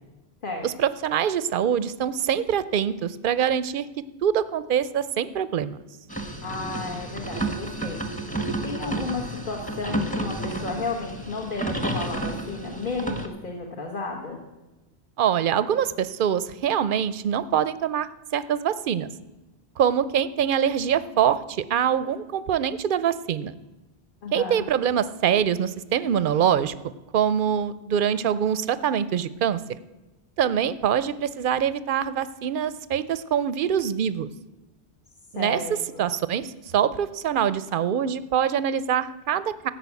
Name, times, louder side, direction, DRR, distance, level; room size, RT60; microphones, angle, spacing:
voice 1, 0.6-3.9 4.2-5.8 15.2-19.1 19.8-23.5 24.3-26.7 27.1-29.6 30.4-34.3 35.3-39.7, right 9 dB, 55° right, 15 dB, 0.7 m, -24 dB
sound 1, 6.1-13.3, right 2 dB, 5° left, 1.1 m, -31 dB
voice 2, 6.4-8.0 8.6-14.4 24.2-24.6 35.3-36.0, left 3 dB, 45° left, 0 dB, 1.5 m, -33 dB
14.5 x 5.9 x 8.2 m, 1.1 s
omnidirectional pair, 1.2 m